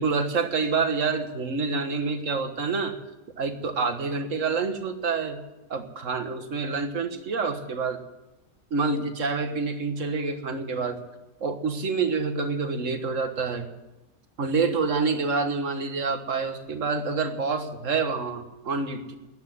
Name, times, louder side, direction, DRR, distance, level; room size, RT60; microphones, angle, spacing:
voice 1, 0.0-2.9 3.4-5.4 5.7-8.0 8.7-11.0 11.4-13.7 14.4-19.2, right 4 dB, 50° right, 7 dB, 1.7 m, -27 dB
13.5 x 10.0 x 9.8 m, 1.0 s
omnidirectional pair, 1.8 m